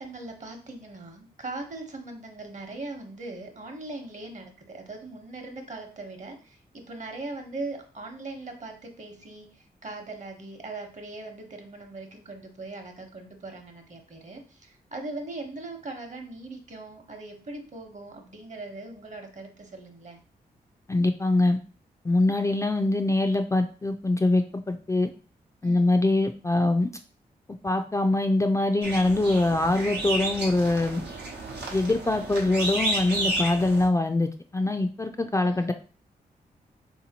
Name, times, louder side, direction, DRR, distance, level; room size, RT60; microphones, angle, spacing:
voice 1, 0.0-20.2 25.6-25.9 31.4-31.7 35.4-35.7, right 2 dB, 45° right, 4 dB, 1.0 m, -40 dB
voice 2, 20.9-21.6 22.0-25.1 25.6-26.9 27.6-31.0 31.7-35.7, left 2 dB, 20° left, 5 dB, 0.3 m, -23 dB
sound 1, 28.8-33.9, right 2 dB, 85° right, 0.8 m, -31 dB
3.5 x 2.8 x 2.8 m, 0.37 s
cardioid pair, 50°, 17 cm